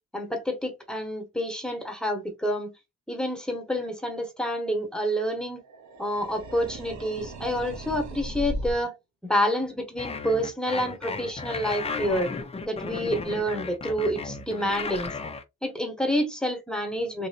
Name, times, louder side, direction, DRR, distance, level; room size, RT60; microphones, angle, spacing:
voice 1, 0.1-2.7 3.1-5.6 6.0-8.9 9.2-12.3 12.7-15.2 15.6-17.3, equal, 5° left, 1.0 m, -28 dB
sound 1, 5.6-8.9 11.0-12.1, right 1 dB, 70° right, 0.9 m, -38 dB
sound 2, 10.0-15.4, left 4 dB, 20° left, 0.4 m, -35 dB
3.3 x 2.7 x 2.7 m
wide cardioid pair, 135°, 30 cm